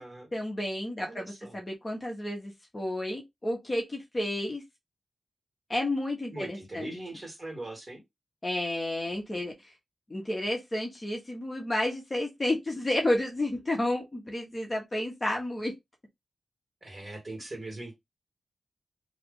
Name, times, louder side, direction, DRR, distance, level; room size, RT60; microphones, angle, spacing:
voice 1, 0.3-4.6 5.7-7.0 8.4-9.5 10.1-15.7, left 1 dB, 25° left, 1.0 m, -31 dB
voice 2, 1.0-1.6 6.3-8.0 15.3-15.4 16.8-17.9, right 2 dB, 25° right, 1.9 m, -41 dB
3.0 x 2.4 x 3.7 m
wide cardioid pair, 90°, 0 cm